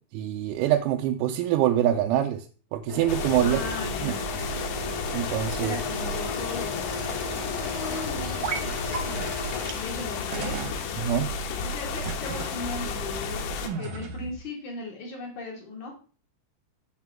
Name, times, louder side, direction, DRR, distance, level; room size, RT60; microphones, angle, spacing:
voice 1, 0.1-2.5 2.7-3.6 4.0-4.1 5.1-5.8 11.0-11.3, right 12 dB, 90° right, 3 dB, 3.4 m, -25 dB
sound 1, 2.9-9.7, left 2 dB, 35° left, 1.0 m, -36 dB
sound 2, 3.1-13.7, left 4 dB, 80° left, 2.4 m, -32 dB
voice 2, 3.4-4.3 5.6-9.3 9.7-10.7 11.6-15.9, left 2 dB, 65° left, -1 dB, 1.9 m, -38 dB
sound 3, 8.4-8.6 8.9-9.0 9.7-9.8 10.3-10.8 12.0-12.5 13.7-14.4, right 5 dB, 70° right, 2.1 m, -33 dB
7.5 x 7.3 x 3.5 m, 0.38 s
omnidirectional pair, 6.0 m